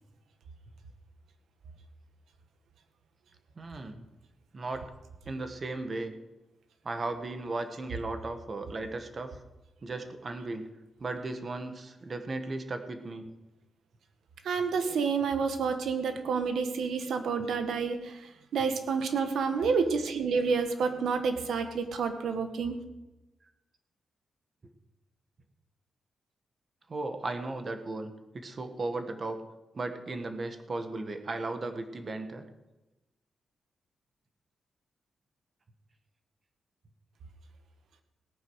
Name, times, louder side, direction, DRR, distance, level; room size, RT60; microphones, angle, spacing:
voice 1, 3.5-4.0 4.5-4.8 5.2-6.2 6.8-9.4 9.8-10.7 11.0-13.3 26.9-29.4 29.7-32.4, right 2 dB, 35° right, 7 dB, 1.6 m, -36 dB
voice 2, 14.4-18.2 18.5-22.8, right 5 dB, 80° right, 7 dB, 1.6 m, -29 dB
17.5 x 9.1 x 6.4 m, 1.0 s
cardioid pair, 115°, 0 cm